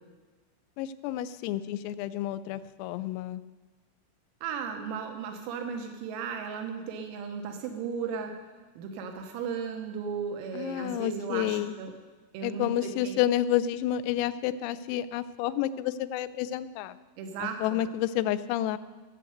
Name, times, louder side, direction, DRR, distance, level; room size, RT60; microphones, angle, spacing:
voice 1, 0.8-3.4 10.5-11.7 12.4-17.0 17.4-18.8, left 12 dB, 90° left, 14 dB, 3.3 m, -30 dB
voice 2, 4.4-8.3 8.8-11.9 12.3-13.2 17.2-17.8, right 6 dB, 90° right, 4 dB, 3.8 m, -35 dB
17.0 x 6.6 x 7.9 m, 1.4 s
omnidirectional pair, 5.9 m